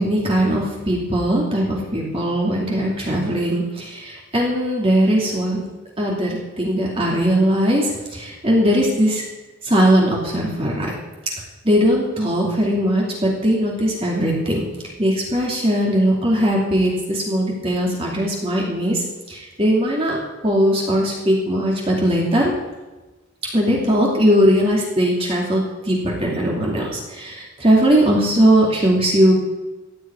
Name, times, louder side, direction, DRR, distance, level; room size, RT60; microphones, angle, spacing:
voice 1, 0.0-5.6 6.0-9.2 9.6-10.9 11.6-14.6 15.0-19.0 19.3-20.2 20.4-22.5 23.5-29.3, equal, 25° right, -3 dB, 2.6 m, -19 dB
16.0 x 6.2 x 9.2 m, 1.1 s
head